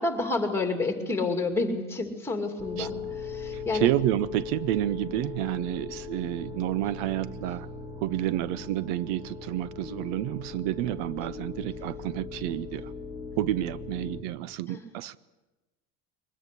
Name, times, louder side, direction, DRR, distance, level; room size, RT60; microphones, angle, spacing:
voice 1, 0.0-3.9 11.2-11.3 14.7-14.8, left 3 dB, 5° left, 5 dB, 2.5 m, -29 dB
sound 1, 2.6-14.2, left 5 dB, 15° right, 2.6 m, -39 dB
voice 2, 3.5-7.7 8.0-12.9 13.4-15.2, right 14 dB, 75° right, 19 dB, 0.7 m, -29 dB
22.5 x 19.5 x 8.3 m, 1.1 s
cardioid pair, 160°, 37 cm